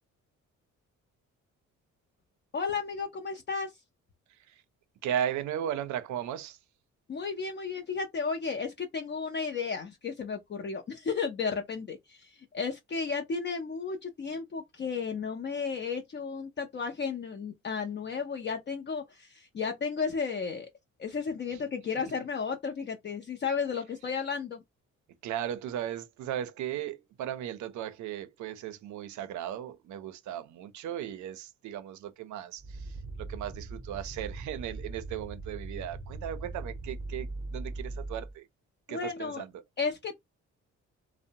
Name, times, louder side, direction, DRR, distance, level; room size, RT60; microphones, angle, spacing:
voice 1, 2.5-3.7 7.1-20.7 21.0-24.6 38.9-39.4 39.8-40.2, left 5 dB, 35° left, 0.5 m, -33 dB
voice 2, 5.0-6.6 25.2-38.5 38.9-39.5, right 10 dB, 70° right, 0.5 m, -36 dB
sound 1, 32.6-38.4, right 2 dB, 15° right, 0.7 m, -40 dB
2.6 x 2.0 x 2.8 m
cardioid pair, 90°, 30 cm